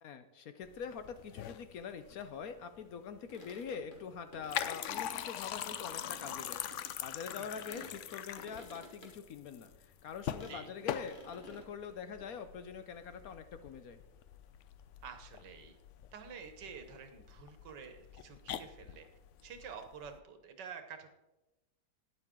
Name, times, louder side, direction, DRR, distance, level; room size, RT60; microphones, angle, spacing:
voice 1, 0.0-9.7 10.0-14.0, left 6 dB, 65° left, 10 dB, 1.0 m, -44 dB
sound 1, 0.6-20.2, left 10 dB, 85° left, 0.6 m, -43 dB
sound 2, 3.3-7.0 7.3-9.1 9.5-9.6 9.8-9.9 10.4-10.6 10.9-11.6, left 1 dB, 30° left, 1.5 m, -54 dB
voice 2, 15.0-15.8 16.1-19.1 19.4-21.1, right 6 dB, 80° right, 7 dB, 1.7 m, -49 dB
12.0 x 9.8 x 3.7 m, 1.0 s
omnidirectional pair, 1.9 m